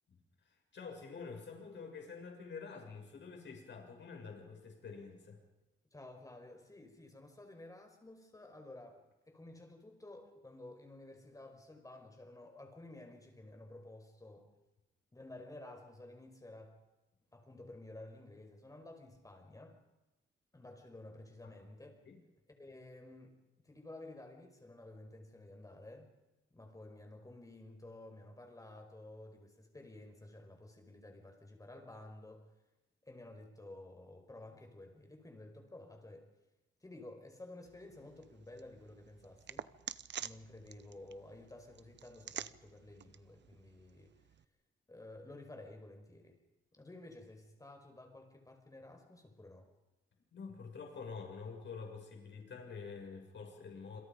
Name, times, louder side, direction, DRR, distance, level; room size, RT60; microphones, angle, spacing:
voice 1, 0.1-5.4 21.4-21.5 22.1-22.2 50.3-54.0, left 5 dB, 60° left, 2 dB, 6.6 m, -48 dB
voice 2, 5.9-9.0 9.3-14.5 15.1-16.8 17.3-19.8 20.5-22.0 22.5-23.4 23.6-26.1 26.5-32.5 33.1-36.3 36.8-39.7 40.2-44.1 44.9-46.4 46.7-49.7, left 2 dB, 15° left, 4 dB, 5.2 m, -53 dB
sound 1, 37.6-44.4, right 9 dB, 60° right, 0.9 m, -49 dB
28.0 x 27.0 x 5.3 m, 1.0 s
wide cardioid pair, 130°, 21 cm